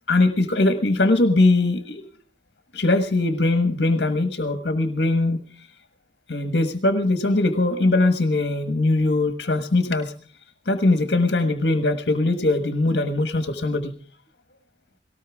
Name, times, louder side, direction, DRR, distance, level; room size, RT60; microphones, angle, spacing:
voice 1, 0.1-2.1 2.7-5.4 6.3-10.1 10.7-13.9, left 2 dB, 60° left, 8 dB, 1.5 m, -21 dB
19.0 x 18.5 x 3.6 m, 0.43 s
head